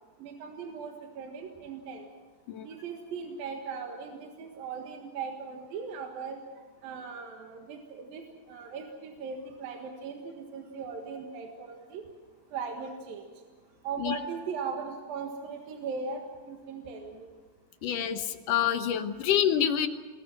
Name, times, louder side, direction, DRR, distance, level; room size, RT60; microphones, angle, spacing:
voice 1, 0.2-2.1 2.6-6.4 6.8-12.0 12.5-13.3 13.8-17.3, right 5 dB, 80° right, 2 dB, 3.4 m, -38 dB
voice 2, 17.8-19.9, left 9 dB, 70° left, 8 dB, 2.5 m, -27 dB
27.5 x 21.0 x 6.0 m, 1.4 s
omnidirectional pair, 4.1 m